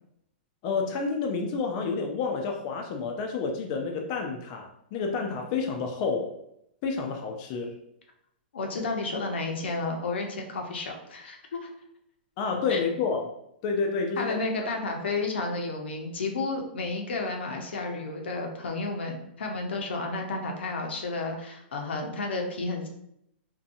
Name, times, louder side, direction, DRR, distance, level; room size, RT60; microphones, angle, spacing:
voice 1, 0.6-6.3 6.8-7.7 12.4-13.3 13.6-14.4, left 4 dB, 40° left, 2 dB, 0.3 m, -29 dB
voice 2, 8.5-11.7 12.7-12.8 14.2-22.9, left 3 dB, 80° left, 2 dB, 0.6 m, -32 dB
2.7 x 2.2 x 2.5 m, 0.76 s
hypercardioid pair, 135°, 6 cm